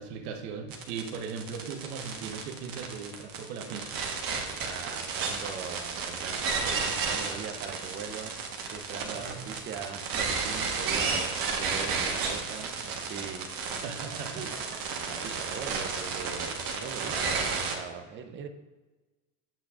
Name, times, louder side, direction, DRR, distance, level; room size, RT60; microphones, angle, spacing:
voice 1, 0.0-4.0 9.0-9.5 13.8-14.5, right 6 dB, 70° right, 5 dB, 1.2 m, -38 dB
sound 1, 0.7-17.7, right 5 dB, 45° right, 1.3 m, -32 dB
voice 2, 4.6-8.3 8.7-13.8 14.1-14.5 14.8-18.5, right 6 dB, 25° right, 7 dB, 0.6 m, -41 dB
8.8 x 5.8 x 2.4 m, 1.2 s
supercardioid pair, 95°, 47 cm